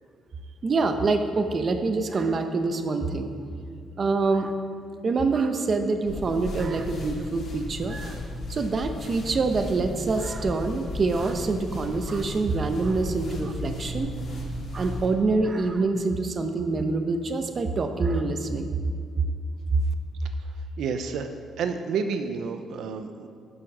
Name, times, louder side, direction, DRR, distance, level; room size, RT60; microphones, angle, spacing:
voice 1, 0.6-3.3 4.0-4.5 5.0-8.2 8.5-14.1 14.7-18.7 19.7-19.8, right 3 dB, 35° right, 7 dB, 0.7 m, -25 dB
sound 1, 6.1-15.1, left 1 dB, 55° left, 2.4 m, -35 dB
voice 2, 20.8-21.3 21.6-23.3, right 5 dB, 75° right, 7 dB, 0.6 m, -30 dB
11.0 x 6.3 x 6.0 m, 2.2 s
cardioid pair, 135°, 0 cm